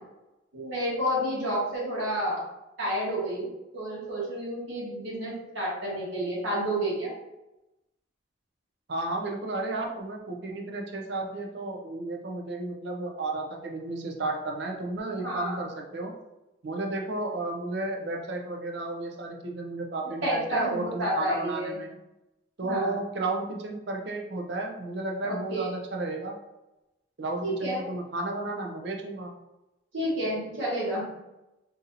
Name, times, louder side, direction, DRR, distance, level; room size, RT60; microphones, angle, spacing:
voice 1, 0.5-2.4 2.8-7.1 15.2-15.7 20.2-21.7 22.6-22.9 25.2-25.7 27.4-27.8 29.9-31.0, equal, 80° right, -6 dB, 1.3 m, -30 dB
voice 2, 8.9-16.1 16.6-21.9 22.6-26.4 27.2-29.3, right 2 dB, 60° right, 2 dB, 0.5 m, -33 dB
4.0 x 2.7 x 2.6 m, 0.96 s
head